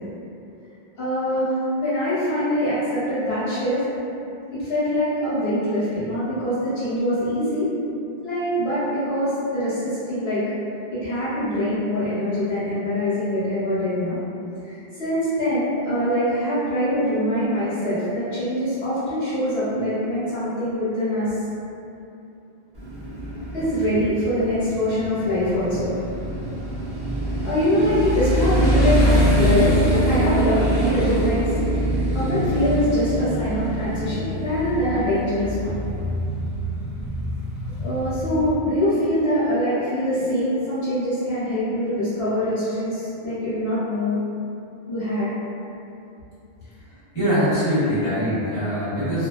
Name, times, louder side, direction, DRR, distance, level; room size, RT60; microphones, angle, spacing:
voice 1, 1.0-1.5 1.8-3.8 4.5-7.7 8.2-10.4 10.9-14.2 14.6-21.3 23.5-25.9 27.4-31.5 32.1-35.7 37.8-44.2 44.9-45.3, equal, 75° left, -13 dB, 1.1 m, -23 dB
Motorcycle, 22.7-38.5, right 1 dB, 35° right, 1.1 m, -24 dB
voice 2, 46.9-49.3, equal, 30° left, -15 dB, 1.2 m, -23 dB
2.4 x 2.3 x 2.3 m, 2.7 s
omnidirectional pair, 1.0 m